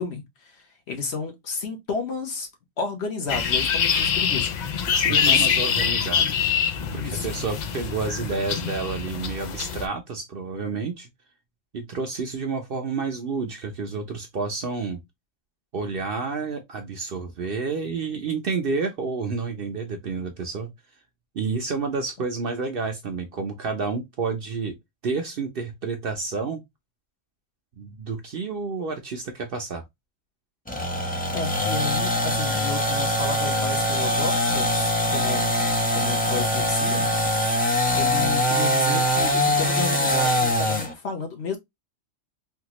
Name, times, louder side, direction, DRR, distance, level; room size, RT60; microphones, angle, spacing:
voice 1, 0.0-2.5 2.8-4.8 5.0-5.5 7.0-7.4 31.3-37.1 37.9-41.6, left 4 dB, 55° left, 1.1 m, -32 dB
sound 1, 3.3-9.9, left 7 dB, 90° left, 0.3 m, -24 dB
voice 2, 4.9-6.5 6.9-11.1 11.7-15.0 15.7-20.7 21.3-24.8 25.0-26.6 27.8-29.8, right 4 dB, 55° right, 0.7 m, -30 dB
sound 2, 30.7-40.9, equal, 10° left, 0.4 m, -23 dB
3.5 x 2.4 x 2.8 m
omnidirectional pair, 1.3 m